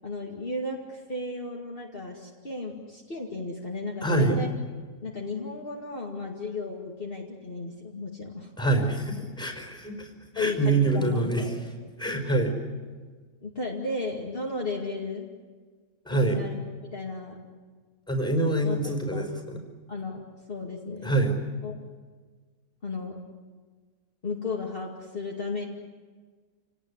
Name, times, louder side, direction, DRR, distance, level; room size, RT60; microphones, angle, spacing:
voice 1, 0.0-4.5 5.0-8.5 10.4-11.6 13.4-15.3 16.1-16.6 16.9-17.4 18.6-18.8 19.1-19.3 19.9-20.2 20.5-21.1 21.6-21.8 22.8-23.2 24.2-25.6, left 3 dB, 35° left, -2 dB, 2.6 m, -34 dB
voice 2, 4.0-4.4 8.6-10.1 10.3-11.4 12.0-12.5 16.0-16.4 18.1-19.6 21.0-21.3, right 2 dB, 5° left, 4 dB, 4.8 m, -25 dB
29.5 x 18.5 x 9.8 m, 1.5 s
omnidirectional pair, 1.6 m